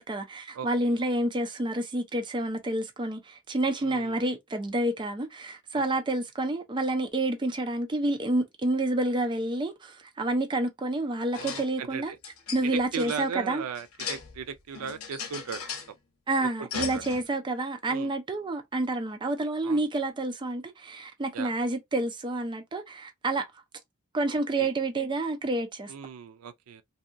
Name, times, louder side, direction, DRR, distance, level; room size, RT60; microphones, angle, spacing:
voice 1, 0.0-12.1 12.5-13.6 16.3-23.4 24.1-25.9, right 2 dB, 20° right, 0.4 m, -29 dB
voice 2, 0.5-1.0 3.8-4.2 5.7-5.8 11.3-12.2 12.6-15.6 16.4-17.0 17.9-18.1 19.6-19.8 21.3-21.5 24.3-24.7 25.9-26.8, right 7 dB, 80° right, 0.4 m, -37 dB
sound 1, 11.3-11.7 12.0-13.2 13.8-14.5 14.7-15.9 16.7-17.2, left 6 dB, 75° left, 0.7 m, -37 dB
2.7 x 2.2 x 2.4 m
head